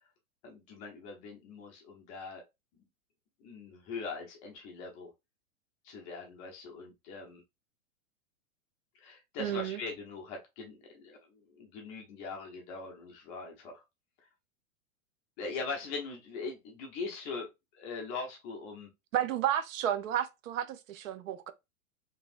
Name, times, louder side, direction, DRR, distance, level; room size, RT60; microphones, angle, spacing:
voice 1, 0.4-2.4 2.7-2.8 3.4-5.1 5.8-7.4 8.9-13.8 15.4-17.5 17.7-18.9, left 4 dB, 20° left, 0.4 m, -41 dB
voice 2, 9.4-9.8 19.1-21.5, right 10 dB, 70° right, 0.6 m, -32 dB
2.8 x 2.6 x 2.3 m
hypercardioid pair, 135°, 41 cm